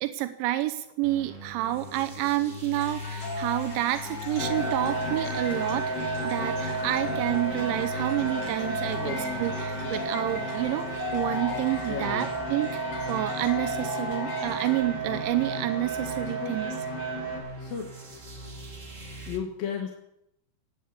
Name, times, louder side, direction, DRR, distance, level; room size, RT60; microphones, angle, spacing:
voice 1, 0.0-6.0 6.2-12.8 13.1-16.7, right 15 dB, 85° right, 10 dB, 3.1 m, -29 dB
sound 1, 1.0-19.4, left 2 dB, 30° right, 1.3 m, -40 dB
sound 2, 2.8-14.8, left 3 dB, 85° left, 6.0 m, -37 dB
sound 3, 4.4-17.4, right 3 dB, 35° left, 5.3 m, -33 dB
voice 2, 8.9-9.5 11.9-12.3 16.4-16.5 17.6-17.9 19.3-19.9, left 7 dB, 65° left, 2 dB, 2.7 m, -34 dB
18.5 x 8.7 x 8.3 m, 0.82 s
omnidirectional pair, 5.2 m